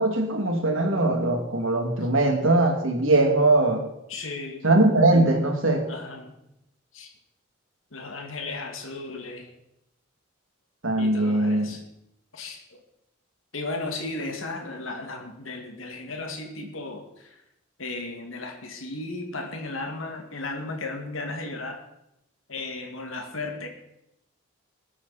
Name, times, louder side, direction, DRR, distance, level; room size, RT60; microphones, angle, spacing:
voice 1, 0.0-3.8 4.6-5.8 10.8-11.7, right 2 dB, 80° right, 3 dB, 2.5 m, -21 dB
voice 2, 4.1-4.7 5.9-6.3 6.9-7.1 7.9-9.5 11.0-11.8 12.3-12.6 13.5-17.4 17.8-21.8 22.5-23.7, left 2 dB, 90° left, 3 dB, 2.3 m, -35 dB
21.0 x 8.5 x 4.3 m, 0.84 s
head